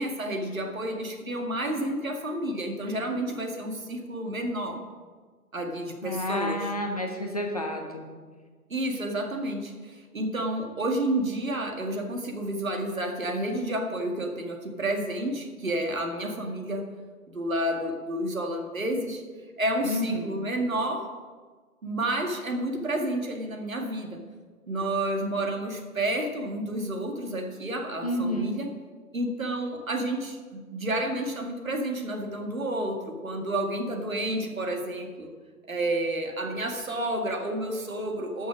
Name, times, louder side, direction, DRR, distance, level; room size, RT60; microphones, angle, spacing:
voice 1, 0.0-4.8 5.5-6.7 8.7-16.9 17.3-19.2 19.6-21.2 21.8-24.2 24.7-28.7 29.1-35.3 35.7-38.5, right 1 dB, 60° right, 4 dB, 2.0 m, -30 dB
voice 2, 6.0-8.0 19.8-20.3 28.0-28.6, left 1 dB, 25° left, 2 dB, 0.8 m, -30 dB
12.5 x 6.4 x 6.3 m, 1.5 s
figure-of-eight pair, 150°, 46 cm